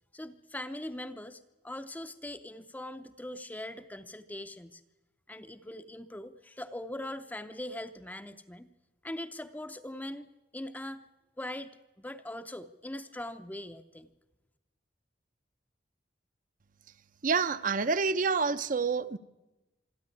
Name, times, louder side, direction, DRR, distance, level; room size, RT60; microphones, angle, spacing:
voice 1, 0.1-4.8 5.3-8.7 9.0-10.3 10.5-11.1 11.4-11.7 12.0-14.1, left 1 dB, 10° left, 9 dB, 0.6 m, -41 dB
voice 2, 17.2-19.2, right 5 dB, 45° right, 14 dB, 0.7 m, -28 dB
25.5 x 10.5 x 9.8 m, 1.1 s
head